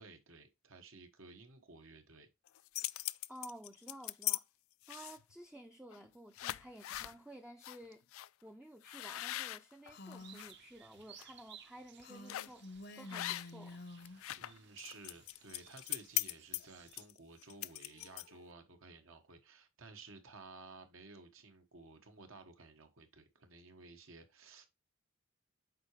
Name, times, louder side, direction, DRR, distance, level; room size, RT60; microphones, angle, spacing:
voice 1, 0.0-2.3 14.1-24.7, right 3 dB, 75° right, 1.2 m, -55 dB
sound 1, 2.5-4.4 4.8-5.3 5.9-6.1 6.3-7.1 7.6-7.8 8.1-8.3 8.8-10.5 11.0-11.2 12.3-12.6 13.1-13.7 14.0-18.5, left 17 dB, 80° left, 0.3 m, -40 dB
voice 2, 3.3-4.5 4.9-8.0 8.4-13.8, right 1 dB, 5° right, 0.4 m, -53 dB
Female speech woman speaking, 9.9-10.5 12.0-14.3, left 2 dB, 50° left, 0.7 m, -50 dB
sound 2, 10.2-17.1, right 9 dB, 55° right, 0.8 m, -60 dB
7.6 x 4.8 x 3.1 m
head